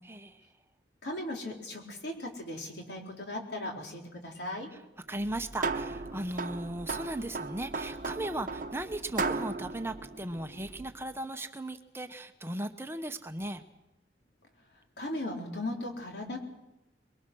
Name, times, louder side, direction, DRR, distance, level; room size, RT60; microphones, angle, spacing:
voice 1, 0.0-0.5 4.7-4.8 5.1-13.6, right 1 dB, 15° right, 7 dB, 0.8 m, -37 dB
voice 2, 1.0-4.7 15.0-16.4, left 1 dB, 70° left, 1 dB, 3.9 m, -37 dB
sound 1, 5.2-11.0, right 3 dB, 50° right, 0.9 m, -36 dB
23.5 x 22.0 x 6.2 m, 0.95 s
head